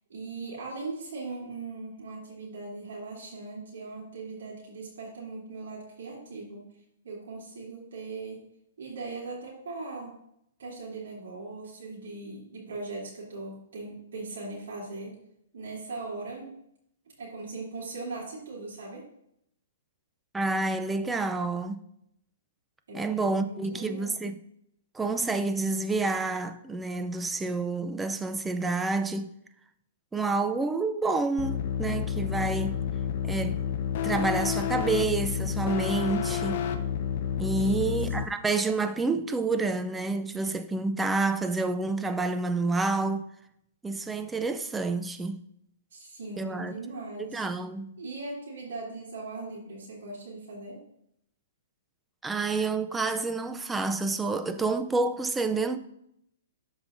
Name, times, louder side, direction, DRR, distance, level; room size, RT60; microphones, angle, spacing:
voice 1, 0.1-6.7 7.0-8.4 8.8-10.2 10.6-15.1 15.5-16.5 17.2-19.0 22.9-24.3 37.5-38.3 45.9-47.4 48.0-50.8, right 3 dB, 80° right, 2.9 m, -39 dB
voice 2, 20.3-21.8 22.9-24.4 24.9-29.3 30.1-32.8 33.2-33.6 34.0-36.6 37.4-43.3 43.8-45.4 46.4-46.7 47.3-47.9 52.2-55.8, right 3 dB, 10° right, 0.4 m, -28 dB
sound 1, 31.4-38.2, left 8 dB, 50° left, 0.7 m, -30 dB
12.5 x 4.9 x 2.6 m
hypercardioid pair, 150°, 0 cm